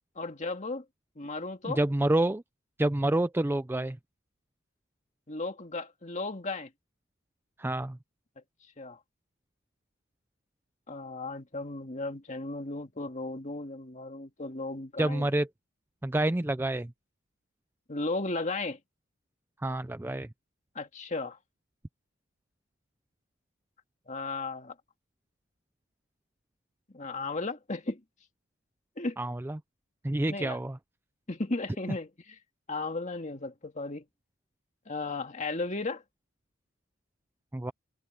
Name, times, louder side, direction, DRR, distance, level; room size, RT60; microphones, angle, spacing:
voice 1, 0.2-0.8 1.2-1.8 5.3-6.7 8.8-9.0 10.9-15.3 17.9-18.8 20.8-21.4 24.1-24.7 26.9-28.0 29.0-29.2 30.3-30.6 31.3-32.1 32.7-34.0 34.9-36.0, left 3 dB, 35° left, 2.0 m, -35 dB
voice 2, 1.6-2.4 2.8-4.0 7.6-8.0 15.0-15.5 16.0-16.9 19.6-20.3 29.2-29.6 30.0-30.8 37.5-37.7, right 1 dB, 10° right, 0.4 m, -28 dB
head